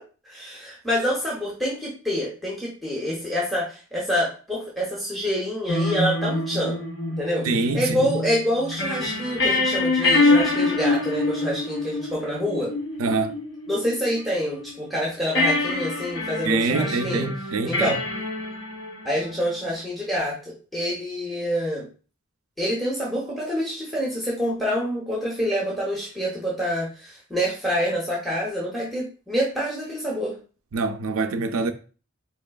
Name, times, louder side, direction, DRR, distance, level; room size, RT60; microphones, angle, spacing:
voice 1, 0.3-6.8 7.2-7.5 7.7-12.7 13.7-17.3 17.6-18.0 19.0-21.9 22.6-30.4, equal, ahead, 0.8 m, -27 dB
sound 1, 5.7-14.8 15.3-19.5, left 2 dB, 65° left, 0.9 m, -25 dB
voice 2, 7.4-8.1 13.0-13.4 16.4-18.0 30.7-31.7, right 3 dB, 85° right, 0.5 m, -25 dB
4.4 x 3.1 x 2.3 m
head